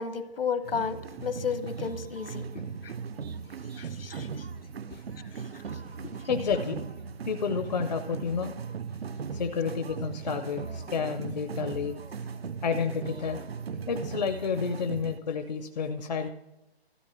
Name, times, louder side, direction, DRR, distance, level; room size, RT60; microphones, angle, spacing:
voice 1, 0.0-2.4 2.8-2.9 3.8-4.3, left 6 dB, 65° left, 12 dB, 1.1 m, -32 dB
sound 1, 0.6-15.2, right 6 dB, 70° right, 0.7 m, -38 dB
voice 2, 6.3-6.8 7.2-8.5 9.3-11.9 12.6-13.4 13.9-16.3, left 6 dB, 40° left, 7 dB, 0.6 m, -30 dB
13.0 x 8.4 x 5.9 m, 0.89 s
hypercardioid pair, 165°, 32 cm